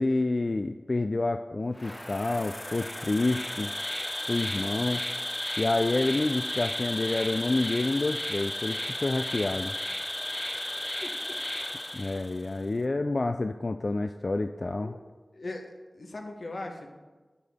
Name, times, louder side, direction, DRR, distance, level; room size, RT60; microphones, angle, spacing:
voice 1, 0.0-3.7 4.3-5.0 5.6-9.7 11.9-14.9, left 2 dB, 55° left, 8 dB, 0.3 m, -28 dB
Insect, 1.7-12.5, left 1 dB, 25° left, 0.8 m, -34 dB
voice 2, 10.5-11.4 14.8-15.0 15.3-16.9, left 2 dB, 75° left, 3 dB, 1.1 m, -40 dB
9.5 x 8.3 x 3.5 m, 1.3 s
wide cardioid pair, 45°, 0 cm